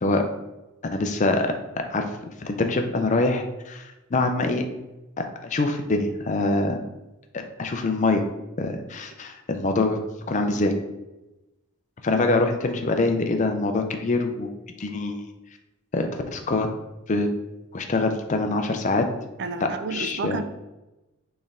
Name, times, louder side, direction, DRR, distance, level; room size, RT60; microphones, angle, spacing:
voice 1, 0.9-1.5 1.9-2.1 2.4-4.6 5.4-6.8 7.3-8.2 8.6-10.0 10.3-10.7 12.0-14.5 14.8-15.3 15.9-16.7 17.1-17.3 17.7-19.1 19.6-20.4, left 2 dB, 35° left, 5 dB, 0.4 m, -24 dB
voice 2, 19.4-20.4, right 4 dB, 50° right, 9 dB, 0.4 m, -31 dB
4.3 x 3.3 x 3.6 m, 1.0 s
head